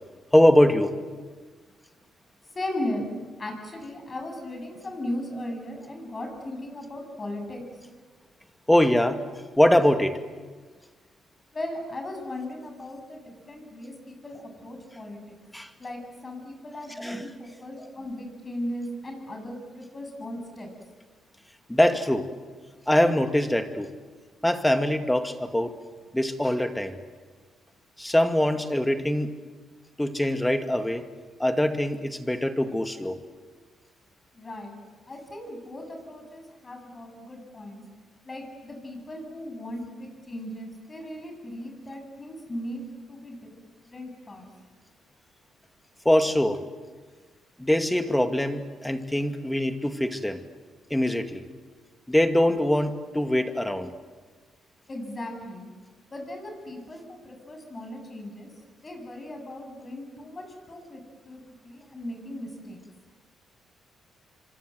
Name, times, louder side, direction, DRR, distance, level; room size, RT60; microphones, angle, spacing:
voice 1, 0.3-1.0 8.7-9.2 9.6-10.2 15.5-15.7 17.0-17.3 21.7-22.3 22.9-23.9 24.4-25.8 26.1-27.0 28.0-29.3 30.0-31.1 31.4-33.2 46.1-46.6 47.6-50.4 50.9-51.4 52.1-53.9, left 1 dB, 5° left, 7 dB, 2.1 m, -23 dB
voice 2, 2.5-3.1 3.4-7.7 11.5-15.4 15.8-20.7 34.3-34.8 35.1-37.8 38.2-42.8 43.1-43.5 43.9-44.5 54.9-55.7 56.1-58.5 58.8-61.0 61.3-62.8, left 1 dB, 30° left, 4 dB, 7.9 m, -37 dB
27.5 x 25.0 x 7.9 m, 1.4 s
cardioid pair, 90°, 0 cm